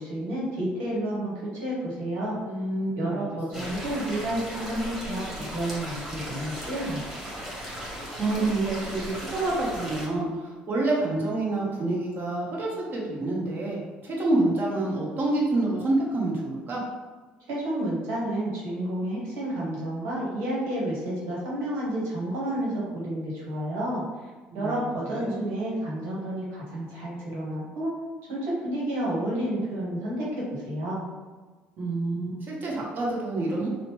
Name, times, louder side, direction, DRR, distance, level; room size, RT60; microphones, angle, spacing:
voice 1, 0.0-2.4 2.9-7.0 17.5-24.0 24.5-28.0 28.3-31.0, right 1 dB, 75° right, -6 dB, 1.2 m, -30 dB
voice 2, 2.4-3.3 3.6-3.7 8.2-16.8 24.5-24.8 25.0-25.4 31.8-33.7, right 2 dB, 50° right, -3 dB, 1.0 m, -27 dB
sound 1, 3.5-10.1, equal, 5° right, 1.3 m, -37 dB
2.8 x 2.0 x 3.1 m, 1.3 s
hypercardioid pair, 65°, 4 cm